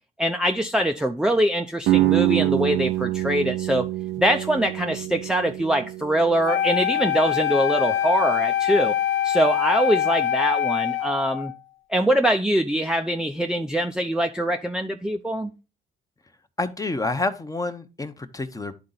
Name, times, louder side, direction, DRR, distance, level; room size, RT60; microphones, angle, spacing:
voice 1, 0.2-3.9 4.2-8.9 9.2-11.5 11.9-15.5, right 1 dB, 5° right, 0.5 m, -23 dB
sound 1, 1.9-7.6, right 17 dB, 75° right, 0.7 m, -26 dB
Wind instrument woodwind instrument, 6.4-11.6, left 10 dB, 80° left, 0.6 m, -24 dB
voice 2, 16.6-18.7, left 3 dB, 15° left, 0.8 m, -28 dB
10.5 x 3.8 x 4.0 m
cardioid pair, 90°, 20 cm